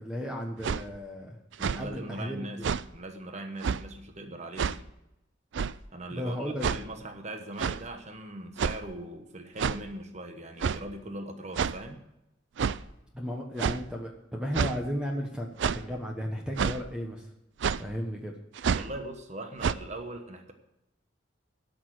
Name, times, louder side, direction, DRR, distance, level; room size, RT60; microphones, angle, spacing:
voice 1, 0.0-1.4 1.7-2.6 6.1-6.7 13.1-17.3 17.8-18.3, equal, 5° right, 0 dB, 1.1 m, -34 dB
sound 1, 0.6-0.8 1.5-1.8 2.6-2.8 3.6-3.8 4.6-4.8 5.5-5.8 6.6-6.8 7.6-7.8 8.6-8.9 9.6-9.8 10.6-10.8 11.6-11.8 12.6-12.8 13.6-13.8 14.5-14.8 15.6-15.8 16.6-16.8 17.6-17.8 18.6-18.9 19.6-19.7, right 6 dB, 70° right, 0.4 m, -28 dB
voice 2, 1.6-2.6 2.9-4.8 5.9-12.0 18.7-20.5, right 1 dB, 35° right, 5 dB, 1.1 m, -40 dB
13.0 x 6.6 x 7.7 m, 0.90 s
head